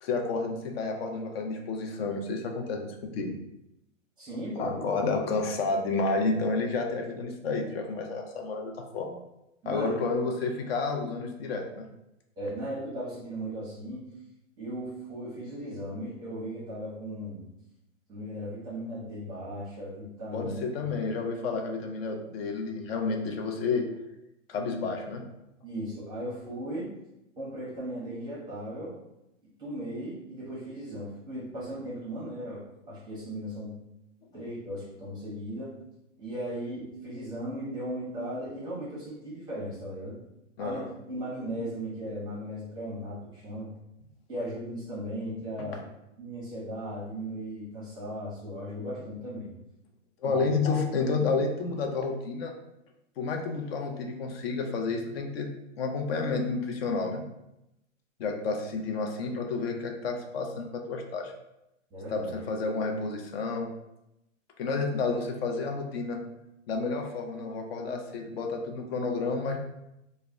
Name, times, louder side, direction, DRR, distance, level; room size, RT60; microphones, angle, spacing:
voice 1, 0.0-3.3 4.6-9.2 9.7-11.9 20.3-23.8 24.5-25.2 40.6-40.9 50.2-52.5 53.2-55.5 55.8-57.2 58.2-61.3 62.1-63.7 64.6-66.2 66.7-69.6, left 4 dB, 50° left, 3 dB, 0.5 m, -30 dB
voice 2, 4.2-5.1 9.6-10.0 12.4-14.1 14.6-17.4 18.1-20.6 25.6-26.9 27.4-29.0 29.6-33.7 34.3-35.7 36.2-40.2 40.6-40.8 41.1-43.7 44.3-45.8 46.2-49.5 50.2-50.5 61.9-62.3, equal, 10° right, -8 dB, 0.7 m, -37 dB
2.1 x 2.1 x 3.5 m, 0.87 s
hypercardioid pair, 145°, 39 cm